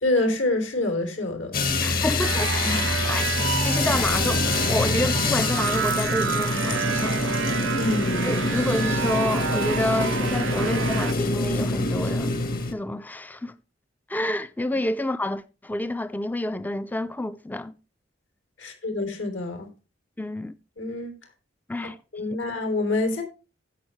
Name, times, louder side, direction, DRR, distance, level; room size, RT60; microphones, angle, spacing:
voice 1, 0.0-1.6 2.6-2.9 7.7-8.5 18.6-19.7 20.8-21.1 22.1-23.2, left 2 dB, 80° left, 3.4 m, -26 dB
sound 1, 1.5-12.7, left 2 dB, 50° left, 1.4 m, -25 dB
voice 2, 1.8-7.4 8.2-12.4 12.7-13.5 14.1-17.7 20.2-20.5 21.7-22.0, left 1 dB, 10° left, 0.5 m, -29 dB
sound 2, 2.2-11.1, right 8 dB, 75° right, 0.6 m, -30 dB
16.0 x 6.5 x 3.1 m
head